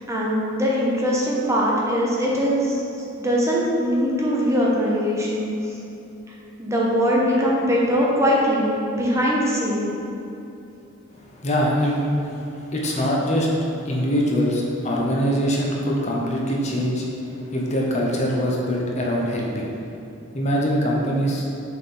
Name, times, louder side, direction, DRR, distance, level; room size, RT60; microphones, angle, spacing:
voice 1, 0.0-5.8 6.3-9.9, equal, 15° right, -4 dB, 0.7 m, -22 dB
voice 2, 11.2-19.7 20.3-21.4, equal, 35° left, -2 dB, 0.7 m, -23 dB
6.6 x 3.6 x 4.3 m, 2.8 s
head